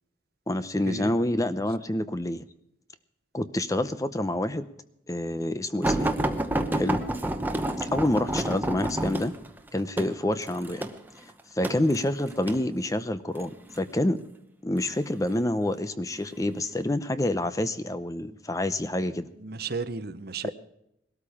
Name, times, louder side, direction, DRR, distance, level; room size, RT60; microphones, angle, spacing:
voice 1, 0.5-2.4 3.3-4.7 5.1-6.1 6.7-7.0 7.8-9.3 9.7-10.9 11.5-13.5 13.7-14.2 14.6-19.3, left 1 dB, 15° left, 12 dB, 0.6 m, -27 dB
sound 1, 5.8-12.6 13.4-13.8 14.8-15.4 16.2-16.3 16.7-16.8, right 1 dB, 10° right, 1.0 m, -29 dB
voice 2, 19.4-20.5, right 4 dB, 50° right, 13 dB, 0.8 m, -34 dB
20.5 x 13.0 x 4.9 m, 0.80 s
head